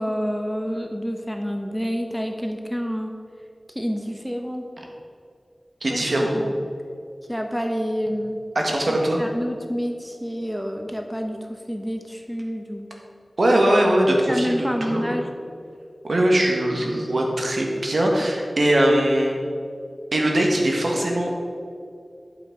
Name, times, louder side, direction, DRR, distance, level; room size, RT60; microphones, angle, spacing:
voice 1, 0.0-3.1 3.7-4.7 5.9-6.0 6.3-6.5 7.3-8.4 8.9-12.9 14.3-15.3, equal, ahead, 3 dB, 0.9 m, -28 dB
voice 2, 5.8-6.3 8.5-9.2 13.4-15.0 16.0-19.4 20.1-21.4, right 1 dB, 70° right, 0 dB, 1.6 m, -21 dB
11.0 x 5.9 x 5.1 m, 2.4 s
wide cardioid pair, 60°, 0 cm